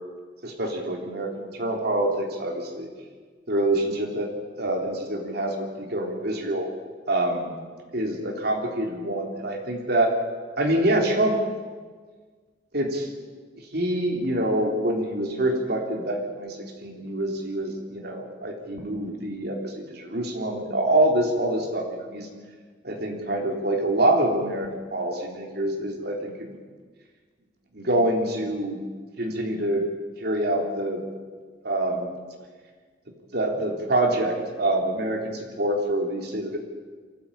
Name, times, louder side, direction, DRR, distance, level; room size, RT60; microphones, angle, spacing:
voice 1, 0.4-2.9 3.5-4.3 4.6-6.7 7.1-7.5 7.9-10.1 10.6-11.4 12.7-13.1 13.7-22.3 22.8-26.5 27.7-28.8 29.2-29.8 30.2-31.0 31.6-32.1 33.3-36.6, right 1 dB, 60° right, 1 dB, 3.6 m, -26 dB
23.5 x 14.5 x 8.8 m, 1.5 s
head